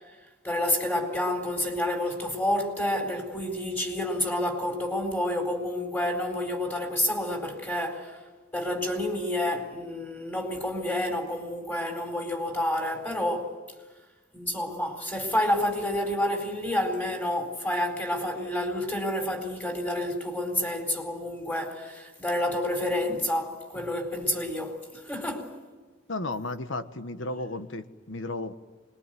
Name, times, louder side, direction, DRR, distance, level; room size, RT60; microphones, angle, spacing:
voice 1, 0.4-8.2 8.5-13.6 14.3-25.5, left 1 dB, 10° left, 4.3 m, -29 dB
voice 2, 26.1-28.5, left 2 dB, 70° left, 1.4 m, -34 dB
25.5 x 22.0 x 9.4 m
head